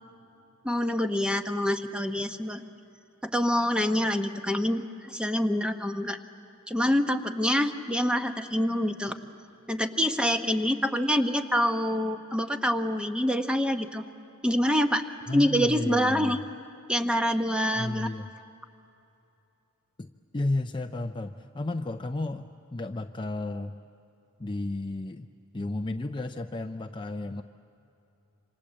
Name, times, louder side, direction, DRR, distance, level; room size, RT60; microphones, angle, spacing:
voice 1, 0.6-2.6 3.3-6.2 6.7-9.2 9.7-14.0 14.4-15.0 15.3-16.4 16.9-18.1, equal, 5° right, 6 dB, 1.0 m, -26 dB
voice 2, 15.3-16.4 17.8-18.3 20.0-20.1 20.3-23.7 24.4-25.3 25.5-27.4, left 2 dB, 25° left, 6 dB, 0.5 m, -32 dB
27.5 x 26.0 x 7.5 m, 2.8 s
head